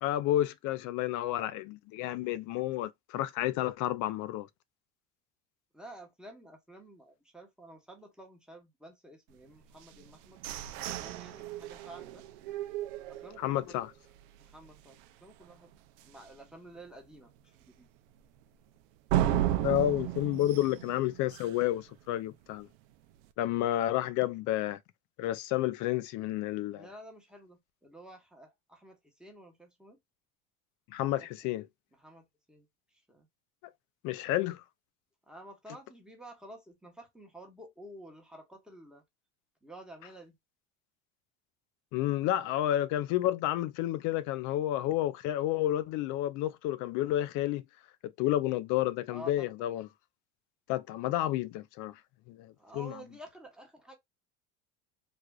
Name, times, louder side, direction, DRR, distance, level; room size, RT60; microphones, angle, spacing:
voice 1, 0.0-4.5 13.4-13.9 19.6-22.7 23.4-24.8 25.2-26.9 30.9-31.7 34.0-34.6 41.9-47.6 48.0-49.9 50.7-52.0 52.3-53.0, left 13 dB, 60° left, 0.5 m, -30 dB
voice 2, 5.7-10.4 10.9-12.2 13.0-13.8 14.4-15.7 16.0-17.9 26.7-30.0 31.1-31.6 31.9-32.7 32.9-33.3 35.3-39.0 39.6-40.3 49.1-49.5 52.6-54.0, right 1 dB, ahead, 0.9 m, -51 dB
sound 1, 9.8-13.7 14.2-14.3 14.6-15.0 15.4-15.5 16.0-16.1 19.1-21.8, right 12 dB, 80° right, 0.5 m, -34 dB
3.3 x 2.4 x 2.3 m
cardioid pair, 125°, 35 cm